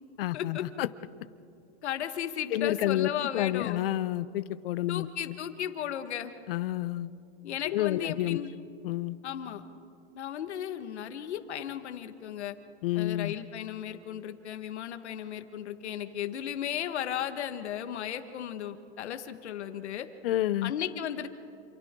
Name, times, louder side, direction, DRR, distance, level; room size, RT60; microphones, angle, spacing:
voice 1, 0.2-0.9 2.5-3.1 3.3-5.1 6.5-7.1 7.6-8.4 8.8-9.2 12.8-13.3 20.2-20.7, left 14 dB, 55° left, 15 dB, 0.8 m, -29 dB
voice 2, 1.8-3.8 4.9-6.3 7.4-8.5 9.2-9.6 10.1-12.6 13.0-20.1 20.6-21.3, left 10 dB, 80° left, 8 dB, 1.8 m, -35 dB
28.0 x 27.5 x 3.8 m, 2.5 s
supercardioid pair, 155°, 33 cm